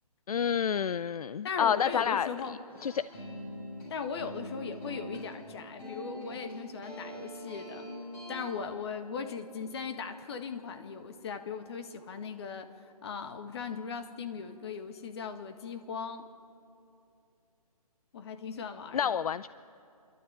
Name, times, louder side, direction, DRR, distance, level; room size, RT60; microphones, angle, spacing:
voice 1, 0.3-2.3 2.8-3.0 18.9-19.5, left 8 dB, 70° left, 16 dB, 0.5 m, -28 dB
voice 2, 1.4-2.6 3.9-7.9 8.3-16.3 18.1-19.2, left 6 dB, 40° left, 7 dB, 1.7 m, -38 dB
sound 1, 2.7-8.5, equal, 25° left, 6.7 m, -43 dB
28.0 x 12.5 x 8.9 m, 2.8 s
hypercardioid pair, 150°, 20 cm